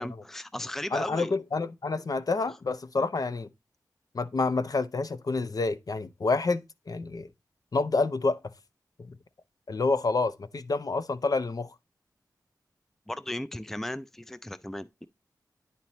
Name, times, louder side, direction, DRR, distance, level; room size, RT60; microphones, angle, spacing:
voice 1, 0.0-1.4 13.1-15.1, left 1 dB, 5° left, 0.4 m, -36 dB
voice 2, 0.9-3.5 4.1-6.6 6.9-7.3 7.7-8.4 9.7-11.7, left 3 dB, 60° left, 0.7 m, -28 dB
10.5 x 4.2 x 3.0 m
wide cardioid pair, 90°, 7 cm